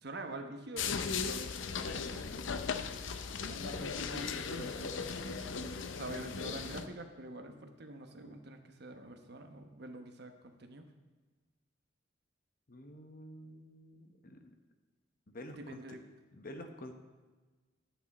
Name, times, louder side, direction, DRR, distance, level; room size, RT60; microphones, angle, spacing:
voice 1, 0.0-1.0 1.9-2.5 3.5-10.3 10.6-10.9 15.6-16.0, right 1 dB, 60° right, 6 dB, 1.0 m, -46 dB
sound 1, 0.8-6.9, left 5 dB, 80° left, 0.6 m, -37 dB
voice 2, 12.7-14.5 15.3-15.8 16.3-16.9, left 1 dB, 50° left, 5 dB, 1.1 m, -49 dB
11.0 x 9.0 x 4.2 m, 1.3 s
head